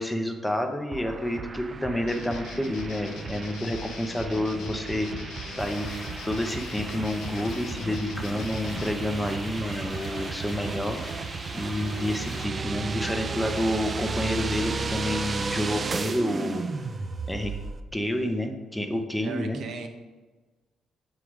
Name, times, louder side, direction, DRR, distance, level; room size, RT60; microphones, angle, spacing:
voice 1, 0.0-5.1 5.6-11.0 11.5-16.6 17.3-17.5 17.9-19.6, left 1 dB, 5° left, 4 dB, 0.7 m, -29 dB
sound 1, 0.9-17.8, right 4 dB, 35° right, 0.4 m, -34 dB
sound 2, 2.1-8.9, left 7 dB, 85° left, 0.4 m, -42 dB
sound 3, 5.6-12.4, left 3 dB, 50° left, 0.8 m, -43 dB
voice 2, 19.2-19.9, right 5 dB, 65° right, 4 dB, 0.7 m, -37 dB
6.0 x 3.7 x 4.7 m, 1.2 s
cardioid pair, 90°, 0 cm